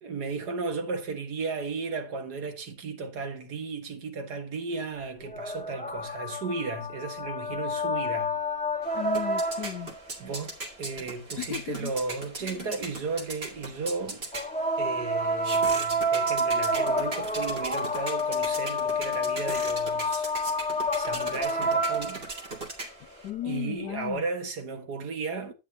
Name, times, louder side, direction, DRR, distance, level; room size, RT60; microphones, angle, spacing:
voice 1, 0.0-8.4 10.2-14.3 14.8-20.3 20.9-22.2 23.5-25.5, right 4 dB, 70° right, 2.0 m, -35 dB
sound 1, 5.2-10.0 14.3-22.6 23.9-24.0, equal, 5° left, 0.8 m, -29 dB
sound 2, 8.8-23.3, right 2 dB, 35° right, 2.6 m, -40 dB
voice 2, 8.9-10.0 11.4-11.9 12.5-12.7 23.2-24.2, left 13 dB, 75° left, 1.3 m, -35 dB
11.0 x 8.7 x 2.7 m
omnidirectional pair, 1.8 m